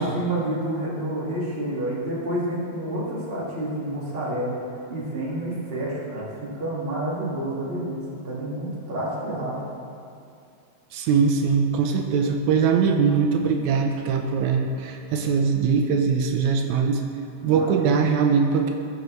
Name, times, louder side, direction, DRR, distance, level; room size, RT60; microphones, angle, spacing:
voice 1, 0.0-4.6 4.9-9.6 17.4-17.9, right 1 dB, 25° right, -6 dB, 1.6 m, -29 dB
voice 2, 10.9-17.0 17.4-18.7, right 5 dB, 80° right, 4 dB, 2.0 m, -21 dB
15.0 x 6.3 x 3.1 m, 2.5 s
omnidirectional pair, 3.4 m